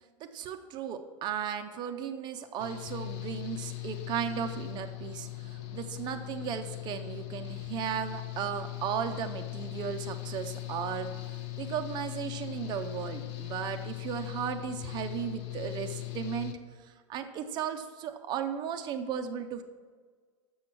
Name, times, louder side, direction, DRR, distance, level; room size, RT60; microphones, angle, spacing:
voice 1, 0.3-16.5 17.1-19.6, right 8 dB, 25° right, 7 dB, 0.5 m, -35 dB
Engine / Mechanical fan, 2.6-16.5, left 17 dB, 40° left, 0.7 m, -39 dB
7.0 x 6.0 x 7.5 m, 1.5 s
supercardioid pair, 150°, 16 cm